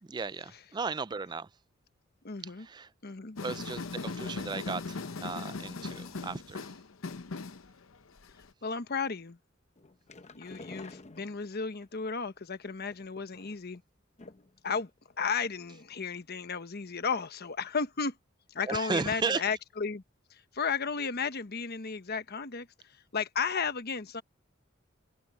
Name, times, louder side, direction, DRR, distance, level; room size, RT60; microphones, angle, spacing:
voice 1, 0.0-1.6 2.4-2.9 3.4-6.8 18.6-19.4, right 4 dB, 20° right, 0.4 m, -35 dB
voice 2, 2.2-2.7 3.0-3.4 8.6-9.4 10.3-13.8 14.6-14.9 15.2-18.2 18.5-20.0 20.3-22.7 23.1-24.2, left 5 dB, 50° left, 1.1 m, -34 dB
sound 1, 3.4-8.5, left 3 dB, 80° left, 0.8 m, -39 dB
sound 2, 9.8-11.9 12.8-13.8 14.2-14.6 14.9-15.0 15.3-15.4, left 3 dB, 35° left, 0.8 m, -50 dB
head